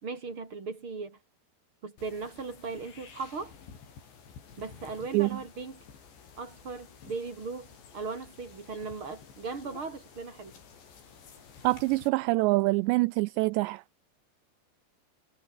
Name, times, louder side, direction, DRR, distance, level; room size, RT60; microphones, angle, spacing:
voice 1, 0.0-1.2 1.8-3.5 4.6-5.8 6.4-10.5, right 4 dB, 30° right, 4.0 m, -38 dB
sound 1, 2.0-12.1, left 6 dB, 70° left, 7.4 m, -52 dB
voice 2, 11.6-13.8, right 23 dB, 85° right, 2.6 m, -25 dB
omnidirectional pair, 5.3 m